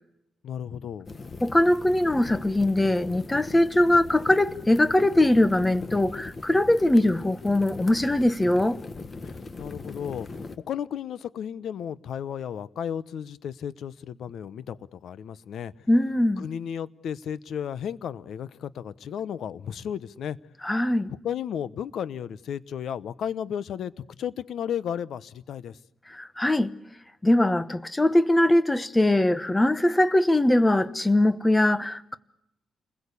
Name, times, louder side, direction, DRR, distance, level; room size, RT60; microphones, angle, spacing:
voice 1, 0.4-1.1 9.2-9.3 9.6-15.9 16.4-20.4 21.2-25.8, left 9 dB, 65° left, 1.0 m, -34 dB
sound 1, 1.1-10.6, left 3 dB, 25° left, 1.5 m, -40 dB
voice 2, 1.4-8.8 15.9-16.5 20.6-21.1 26.1-26.7 27.2-32.2, left 1 dB, 10° left, 1.1 m, -21 dB
30.0 x 21.0 x 8.5 m
cardioid pair, 155°, 0 cm